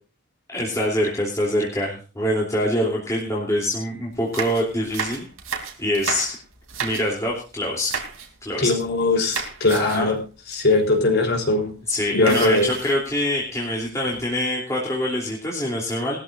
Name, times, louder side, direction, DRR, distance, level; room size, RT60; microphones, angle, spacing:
voice 1, 0.5-5.3 5.8-6.4 6.8-7.9 8.4-8.7 9.7-10.1 11.9-16.2, left 1 dB, 15° left, -3 dB, 3.1 m, -24 dB
sound 1, 4.1-7.3 7.9-8.3 8.6-9.0 9.3-10.1 10.5-10.6 10.9-11.1 12.3-13.2 13.8-14.4, right 6 dB, 80° right, 3.1 m, -32 dB
voice 2, 8.6-10.2 10.5-11.7 12.1-12.7, left 2 dB, 55° left, 3 dB, 3.8 m, -20 dB
20.0 x 13.5 x 2.6 m, 0.35 s
head